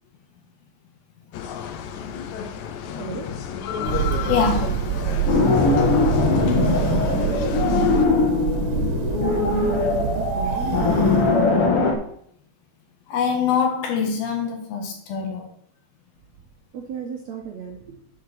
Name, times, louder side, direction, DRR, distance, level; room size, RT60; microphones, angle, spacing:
sound 1, 1.3-8.1, left 8 dB, 85° left, 1.6 m, -31 dB
Thunder, 3.8-11.7, right 10 dB, 80° right, 2.8 m, -27 dB
voice 1, 4.3-4.8 13.1-15.5, left 6 dB, 70° left, 3.5 m, -24 dB
sound 2, 5.3-11.9, left 3 dB, 50° left, 2.0 m, -20 dB
voice 2, 6.2-7.4 7.6-8.6 9.2-9.6 9.9-11.0 16.7-18.0, right 7 dB, 60° right, 2.0 m, -35 dB
7.9 x 7.7 x 6.9 m
omnidirectional pair, 4.5 m